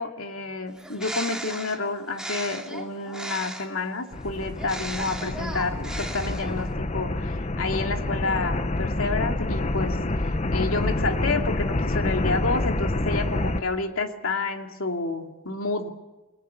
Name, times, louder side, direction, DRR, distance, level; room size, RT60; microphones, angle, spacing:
voice 1, 0.0-15.9, left 3 dB, 85° left, 4 dB, 2.6 m, -29 dB
Bird, 0.7-3.8 4.5-6.7, right 1 dB, 5° right, 2.7 m, -36 dB
sound 1, 4.1-13.6, left 2 dB, 35° left, 0.9 m, -27 dB
29.5 x 22.0 x 7.0 m, 1.1 s
head